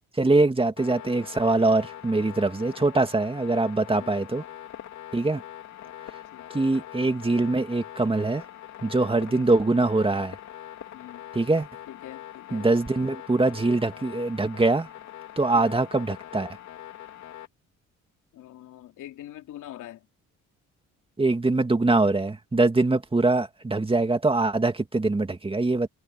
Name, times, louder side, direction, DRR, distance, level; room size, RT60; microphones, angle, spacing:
voice 1, 0.2-4.4 5.1-5.4 6.5-8.4 8.8-10.4 11.3-11.7 12.5-14.9 15.4-16.6 21.2-25.9, right 2 dB, 20° right, 2.4 m, -23 dB
sound 1, 0.8-17.5, left 12 dB, 65° left, 3.1 m, -43 dB
voice 2, 6.3-6.7 9.3-10.1 10.9-11.3 11.9-12.7 15.5-15.8 18.3-20.1, left 13 dB, 85° left, 3.3 m, -45 dB
cardioid pair, 90°, 30 cm